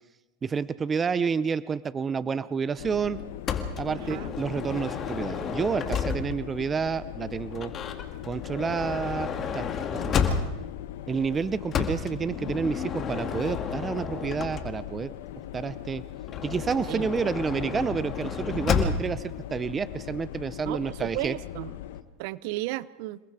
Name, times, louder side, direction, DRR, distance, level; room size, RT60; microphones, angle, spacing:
voice 1, 0.4-3.2 3.8-7.7 8.2-9.6 9.9-10.2 11.1-15.1 15.5-16.0 16.4-21.3, right 6 dB, 25° right, 16 dB, 0.7 m, -29 dB
sound 1, 2.8-22.0, left 12 dB, 70° left, 1.3 m, -40 dB
Motor vehicle (road) / Sliding door, 3.5-6.5 7.5-10.8 11.7-15.0 16.2-19.2, left 6 dB, 35° left, 2.4 m, -31 dB
voice 2, 3.9-4.3 9.9-10.0 16.9-17.0 20.7-21.7 22.2-23.2, right 17 dB, 65° right, 18 dB, 0.8 m, -34 dB
28.0 x 20.0 x 4.9 m, 1.1 s
hypercardioid pair, 95°, 0 cm